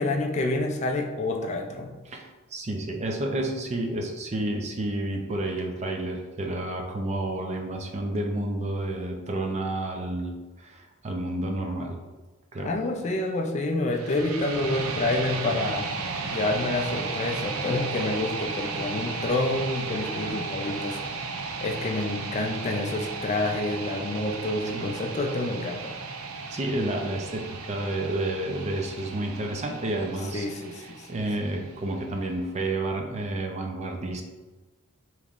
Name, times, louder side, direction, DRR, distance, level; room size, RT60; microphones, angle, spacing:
voice 1, 0.0-2.0 12.6-15.9 16.3-21.0 21.6-25.9 30.3-31.2, left 2 dB, 35° left, 3 dB, 0.3 m, -28 dB
voice 2, 2.1-12.0 12.5-12.7 24.7-24.9 26.5-30.5 30.8-34.2, right 1 dB, 30° right, 2 dB, 0.5 m, -30 dB
sound 1, 13.9-31.9, right 4 dB, 80° right, 0.5 m, -34 dB
5.2 x 3.0 x 2.4 m, 1.2 s
head